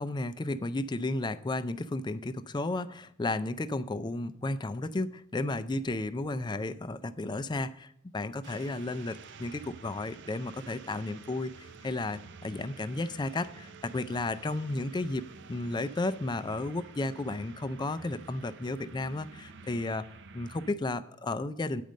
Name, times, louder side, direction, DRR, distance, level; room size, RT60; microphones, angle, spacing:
voice 1, 0.0-15.2 15.5-20.1 20.3-21.8, left 2 dB, 20° left, 13 dB, 0.4 m, -33 dB
sound 1, 8.4-20.7, right 4 dB, 60° right, 0.6 m, -50 dB
9.2 x 5.2 x 7.4 m, 0.69 s
head